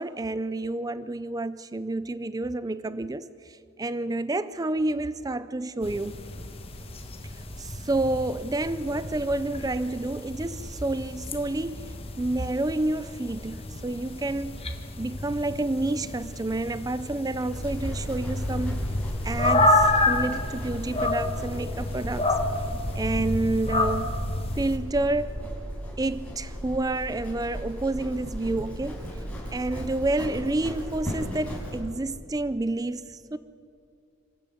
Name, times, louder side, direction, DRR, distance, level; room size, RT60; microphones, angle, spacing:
voice 1, 0.0-6.1 7.3-14.6 15.0-18.8 19.2-22.3 23.0-24.2 24.6-25.4 26.0-29.1 29.5-33.4, right 2 dB, 15° right, 0.4 m, -29 dB
sound 1, 5.8-24.8, left 2 dB, 25° left, 1.3 m, -29 dB
Livestock farm animals working animals, 17.5-31.8, equal, 5° left, 5.6 m, -36 dB
26.5 x 13.0 x 8.7 m
head